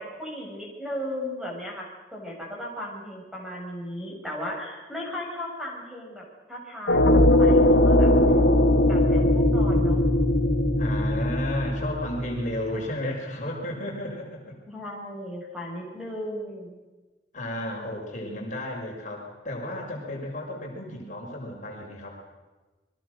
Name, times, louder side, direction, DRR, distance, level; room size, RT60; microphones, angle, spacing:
voice 1, 0.0-6.2 6.5-8.1 8.9-10.1 14.7-16.8, left 1 dB, ahead, -2 dB, 7.1 m, -36 dB
sound 1, 6.9-12.7, left 1 dB, 70° left, 2.7 m, -20 dB
voice 2, 10.8-14.6 17.3-22.2, left 1 dB, 45° left, -1 dB, 5.9 m, -33 dB
29.5 x 23.0 x 6.6 m, 1.2 s
head